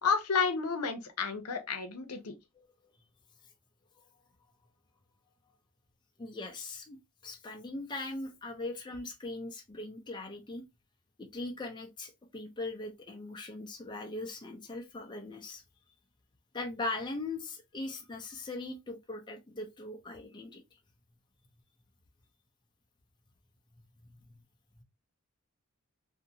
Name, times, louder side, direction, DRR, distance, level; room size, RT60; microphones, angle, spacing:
voice 1, 0.0-2.3, left 5 dB, 80° left, 0.7 m, -31 dB
voice 2, 6.2-7.0 7.2-10.6 11.2-15.6 16.5-20.6, left 2 dB, 20° left, 0.5 m, -40 dB
2.6 x 2.5 x 2.7 m
head